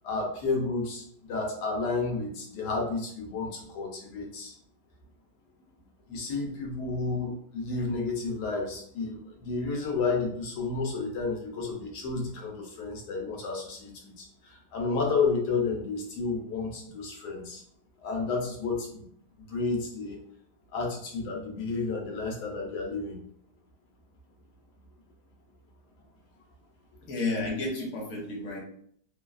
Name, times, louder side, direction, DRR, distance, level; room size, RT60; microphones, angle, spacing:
voice 1, 0.0-4.5 6.1-17.6 18.0-19.0 19.5-20.2 20.7-23.2, left 4 dB, 75° left, 0 dB, 1.3 m, -31 dB
voice 2, 27.1-28.6, left 2 dB, 55° left, -2 dB, 0.9 m, -31 dB
3.1 x 2.3 x 2.4 m, 0.64 s
omnidirectional pair, 1.8 m